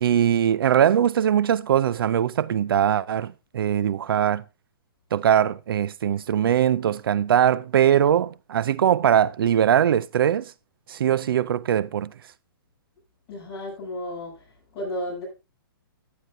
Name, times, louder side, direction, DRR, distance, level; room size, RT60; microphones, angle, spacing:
voice 1, 0.0-4.4 5.1-10.5 10.9-12.1, right 10 dB, 70° right, 0.4 m, -21 dB
voice 2, 13.3-14.4 14.7-15.2, left 1 dB, 20° left, 7.5 m, -33 dB
14.0 x 9.9 x 2.6 m
hypercardioid pair, 165°, 12 cm